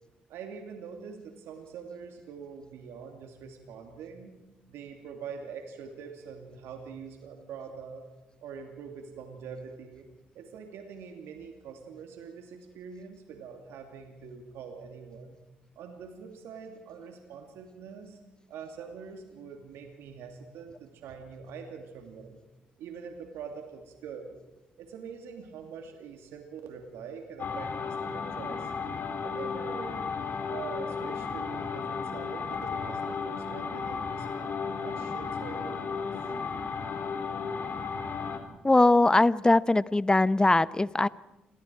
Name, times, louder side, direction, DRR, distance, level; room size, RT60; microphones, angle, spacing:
voice 1, 0.3-4.4 4.7-8.0 8.4-10.1 10.3-15.3 15.7-18.2 18.5-22.4 22.8-24.4 24.8-28.7 29.2-30.1 30.5-36.2, right 6 dB, 75° right, 4 dB, 2.8 m, -44 dB
sound 1, 27.4-38.4, left 5 dB, 50° left, 4.5 m, -34 dB
voice 2, 38.6-41.1, left 2 dB, 20° left, 18 dB, 0.9 m, -21 dB
29.0 x 22.5 x 4.7 m, 1.0 s
hypercardioid pair, 45°, 4 cm